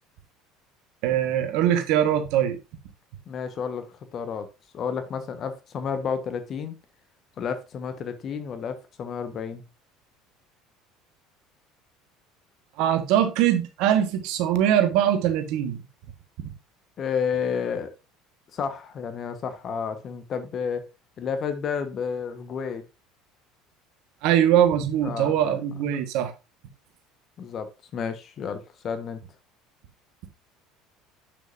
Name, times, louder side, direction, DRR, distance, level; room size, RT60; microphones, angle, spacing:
voice 1, 1.0-2.6 12.8-15.8 16.4-16.5 24.2-26.3, right 10 dB, 65° right, 1.5 m, -22 dB
voice 2, 3.3-4.5 4.7-6.8 7.4-9.6 17.0-17.9 18.5-20.9 21.2-22.8 25.0-25.5 27.4-29.2, left 6 dB, 45° left, 1.4 m, -31 dB
8.1 x 6.9 x 2.7 m
hypercardioid pair, 65°, 0 cm